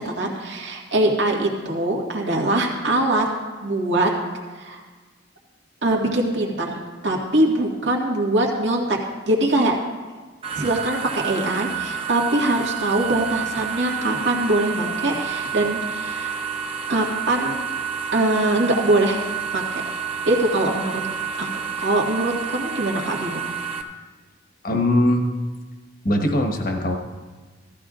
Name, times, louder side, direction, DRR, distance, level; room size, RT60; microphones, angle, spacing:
voice 1, 0.0-3.3 3.6-4.1 4.6-4.8 5.8-9.0 9.3-9.8 10.5-16.3 16.9-17.6 18.1-19.2 19.5-19.8 20.3-21.0 21.4-21.5 21.8-23.4, right 1 dB, 80° right, -1 dB, 1.9 m, -22 dB
sound 1, 10.4-23.8, right 7 dB, 30° right, 0.9 m, -29 dB
voice 2, 24.6-25.3 26.0-27.0, left 1 dB, 50° left, 3 dB, 1.2 m, -20 dB
16.5 x 13.5 x 2.5 m, 1.3 s
head